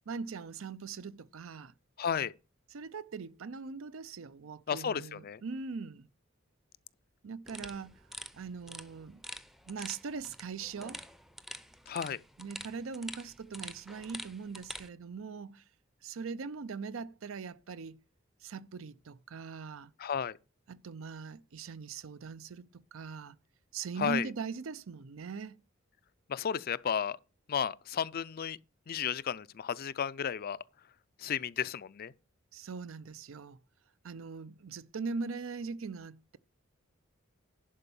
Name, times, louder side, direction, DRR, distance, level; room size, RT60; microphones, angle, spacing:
voice 1, 0.1-1.7 2.7-6.1 7.2-8.1 8.3-9.2 9.7-11.0 12.4-15.6 16.0-18.0 18.4-19.9 20.7-23.4 23.7-25.6 32.5-33.6 34.0-36.4, right 5 dB, 75° right, 0.5 m, -41 dB
voice 2, 2.0-2.3 4.7-5.4 11.9-12.2 20.0-20.4 24.0-24.3 26.3-27.2 27.5-28.6 28.9-30.6 31.2-32.1, left 7 dB, 45° left, 0.4 m, -33 dB
sound 1, 7.5-14.9, equal, ahead, 0.6 m, -47 dB
11.0 x 4.5 x 6.9 m
head